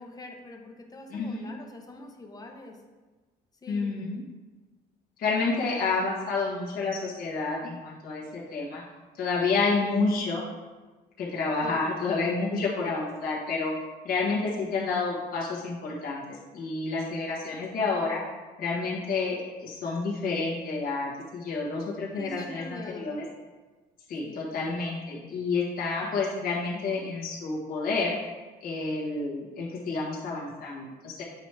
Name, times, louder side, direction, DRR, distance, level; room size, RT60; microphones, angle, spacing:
voice 1, 0.0-2.8 3.6-3.9 5.3-6.0 9.8-10.1 11.6-11.8 22.1-23.1 24.2-24.5, left 2 dB, 20° left, 3 dB, 0.8 m, -43 dB
voice 2, 1.1-1.5 3.7-4.2 5.2-8.8 9.2-10.4 11.2-13.7 14.0-18.2 18.6-23.3 24.1-28.2 28.6-31.2, left 4 dB, 60° left, -5 dB, 1.4 m, -29 dB
8.2 x 3.0 x 4.7 m, 1.3 s
cardioid pair, 110°, 17 cm